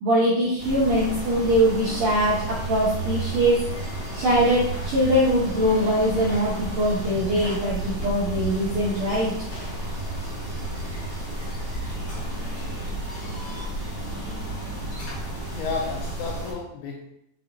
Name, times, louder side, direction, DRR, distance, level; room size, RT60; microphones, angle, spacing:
voice 1, 0.0-3.6 4.1-9.3, equal, 75° right, -8 dB, 1.9 m, -22 dB
sound 1, 0.6-16.5, right 2 dB, 30° right, 1.4 m, -33 dB
sound 2, 0.9-16.3, right 1 dB, 55° left, 1.6 m, -39 dB
voice 2, 15.4-17.0, left 4 dB, 80° left, -1 dB, 2.7 m, -32 dB
7.1 x 5.9 x 2.6 m, 0.77 s
omnidirectional pair, 5.8 m